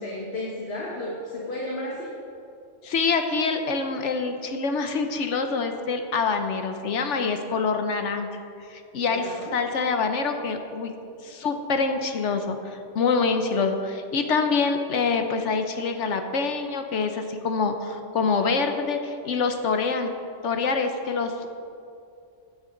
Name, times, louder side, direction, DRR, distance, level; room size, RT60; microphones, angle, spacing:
voice 1, 0.0-2.1 9.1-9.5, left 1 dB, 55° left, -4 dB, 1.8 m, -33 dB
voice 2, 2.8-8.3 8.7-10.9 11.2-20.1 20.4-21.3, left 4 dB, 75° left, 6 dB, 1.1 m, -25 dB
16.0 x 10.0 x 3.9 m, 2.5 s
omnidirectional pair, 1.3 m